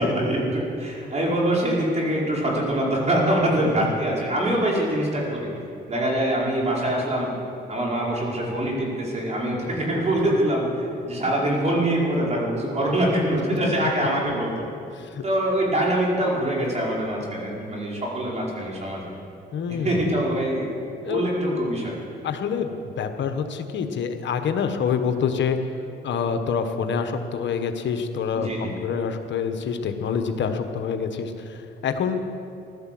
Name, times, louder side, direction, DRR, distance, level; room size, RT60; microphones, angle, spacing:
voice 1, 0.0-5.5 5.9-7.3 7.7-14.6 15.2-19.1 19.8-20.7 21.1-21.9 28.3-28.8, right 1 dB, 35° right, -3 dB, 5.0 m, -24 dB
voice 2, 19.5-19.9 21.0-21.2 22.2-25.6 26.0-32.4, left 6 dB, 65° left, 7 dB, 1.3 m, -26 dB
15.5 x 12.0 x 7.7 m, 2.6 s
cardioid pair, 90°, 20 cm